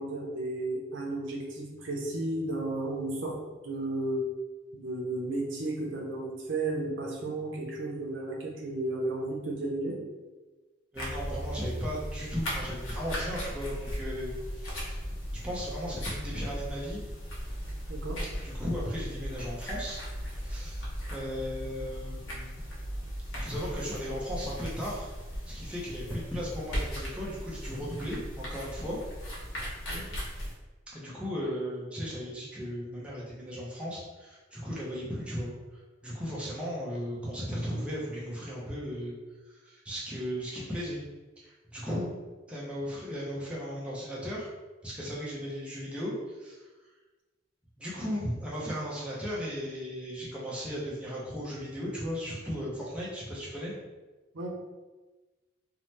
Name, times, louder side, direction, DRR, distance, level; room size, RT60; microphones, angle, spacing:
voice 1, 0.0-3.4 3.6-4.3 4.7-10.0 17.9-18.2 29.9-30.1 54.3-54.5, right 2 dB, 70° right, -1 dB, 0.6 m, -33 dB
sound 1, 10.9-30.5, equal, 85° left, 0.9 m, -37 dB
voice 2, 10.9-15.0 15.3-17.0 18.3-20.0 20.4-20.8 21.1-22.6 23.3-25.1 25.5-29.0 29.3-29.4 30.9-35.5 36.0-39.2 39.4-41.0 41.4-42.2 42.5-44.5 44.8-46.7 47.8-53.7, equal, 5° right, -7 dB, 0.5 m, -36 dB
2.8 x 2.1 x 3.1 m, 1.2 s
head